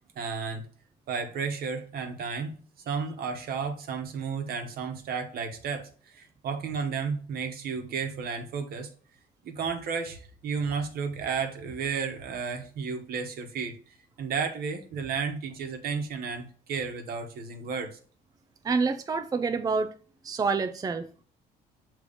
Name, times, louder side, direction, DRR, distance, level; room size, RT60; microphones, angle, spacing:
voice 1, 0.1-0.7 1.1-2.6 2.9-8.9 9.4-18.0, right 5 dB, 65° right, 1.3 m, -33 dB
voice 2, 18.6-19.9 20.2-21.2, right 4 dB, 20° right, 0.5 m, -28 dB
6.9 x 3.3 x 5.1 m
cardioid pair, 110°, 17 cm